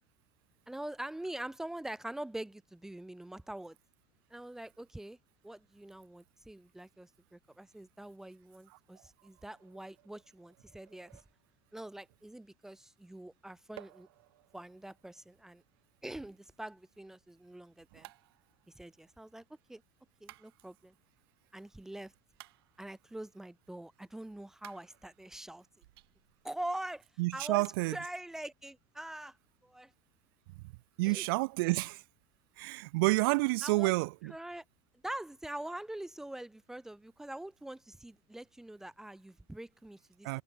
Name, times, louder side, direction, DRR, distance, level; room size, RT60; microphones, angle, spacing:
voice 1, 0.7-3.8 4.3-5.2 5.4-11.2 11.7-14.1 14.5-15.6 16.0-18.1 18.7-19.4 19.7-19.8 20.2-20.9 21.5-22.1 22.8-25.7 26.4-27.0 27.3-29.4 29.6-29.9 31.0-31.3 33.6-33.9 34.2-34.6 35.0-40.4, right 1 dB, 5° right, 1.2 m, -44 dB
sound 1, 9.6-11.8 13.8-16.8 18.0-19.5 20.3-21.4 22.4-23.3 24.6-26.6 26.9-27.0 27.6-27.7, right 19 dB, 85° right, 7.8 m, -58 dB
voice 2, 27.2-28.0 31.0-32.0 32.6-34.3 40.2-40.4, right 25 dB, 65° right, 2.4 m, -29 dB
cardioid pair, 170°, 12 cm